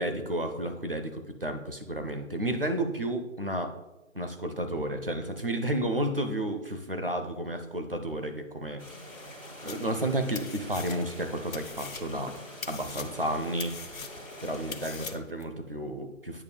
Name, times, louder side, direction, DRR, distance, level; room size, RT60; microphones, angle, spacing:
voice 1, 0.0-3.7 4.1-8.8 9.6-12.3 12.7-13.8 14.4-16.4, right 1 dB, 45° right, 6 dB, 0.6 m, -32 dB
sound 1, 8.8-15.1, left 1 dB, 25° left, 1.5 m, -45 dB
sound 2, 9.7-10.1 10.4-11.3 11.5-15.4, left 5 dB, 75° left, 0.7 m, -42 dB
8.7 x 5.1 x 2.3 m, 0.97 s
figure-of-eight pair, 180°, 41 cm